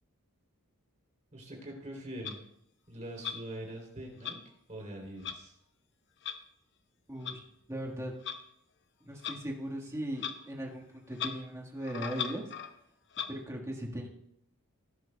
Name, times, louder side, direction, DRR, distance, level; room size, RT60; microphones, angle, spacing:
voice 1, 1.3-2.5 2.9-4.4 4.7-5.6, right 1 dB, 35° right, 0 dB, 3.1 m, -43 dB
Clock, 2.2-2.4 3.2-3.4 4.2-4.3 5.2-5.4 6.2-6.4 7.2-7.3 8.2-8.4 9.2-9.4 10.2-10.4 10.6-10.7 11.1-11.3 11.8-12.7 13.1-13.3, left 7 dB, 55° left, 0.8 m, -37 dB
voice 2, 7.1-7.4 7.7-8.1 9.0-12.5 13.3-14.1, right 1 dB, 15° right, 0 dB, 1.5 m, -38 dB
17.5 x 11.0 x 2.2 m, 0.75 s
head